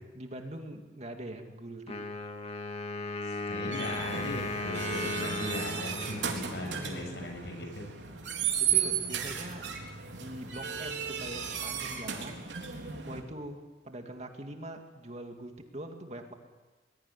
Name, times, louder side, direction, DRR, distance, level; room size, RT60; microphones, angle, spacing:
voice 1, 0.1-2.0 6.5-7.4 8.6-9.7 10.2-16.3, right 1 dB, 40° right, 4 dB, 2.5 m, -43 dB
Wind instrument woodwind instrument, 1.9-7.5, left 2 dB, 35° left, 2.1 m, -37 dB
voice 2, 3.2-7.9, left 1 dB, 70° left, 3 dB, 7.3 m, -38 dB
sound 1, 3.7-13.2, right 8 dB, 85° right, 3.8 m, -34 dB
23.0 x 21.0 x 9.8 m, 1.3 s
head